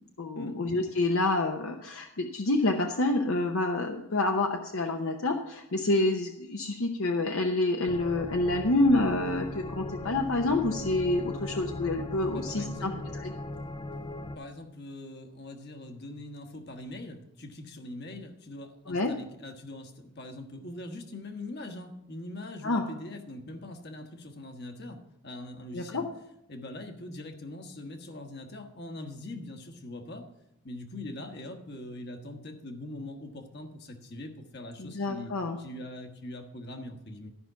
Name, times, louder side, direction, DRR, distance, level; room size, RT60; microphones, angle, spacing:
voice 1, 0.2-12.9 13.2-13.3 18.9-19.1 22.6-22.8 25.7-26.0 34.8-35.6, left 2 dB, 65° left, 3 dB, 0.8 m, -28 dB
sound 1, 7.9-14.4, left 2 dB, 20° left, 0.4 m, -38 dB
voice 2, 12.3-13.0 14.3-26.1 26.5-30.3 30.6-35.3 35.6-37.3, left 1 dB, 50° left, 5 dB, 1.3 m, -42 dB
13.0 x 5.9 x 5.7 m, 0.81 s
head